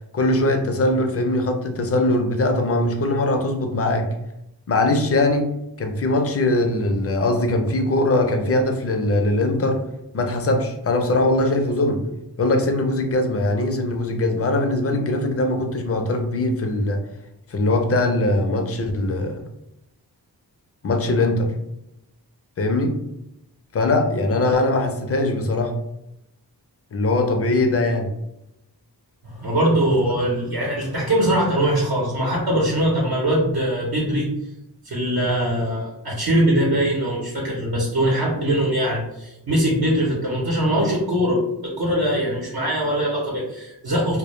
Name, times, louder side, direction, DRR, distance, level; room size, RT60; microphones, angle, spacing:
voice 1, 0.1-4.1 4.7-5.5 5.8-9.8 10.1-12.0 12.4-17.0 17.5-19.4 20.8-21.5 22.6-22.9 23.7-25.7 26.9-28.1, left 2 dB, 35° left, 4 dB, 0.4 m, -21 dB
voice 2, 29.2-34.3 34.8-44.2, right 1 dB, 60° right, -4 dB, 0.8 m, -22 dB
2.1 x 2.0 x 3.0 m, 0.85 s
wide cardioid pair, 85°, 40 cm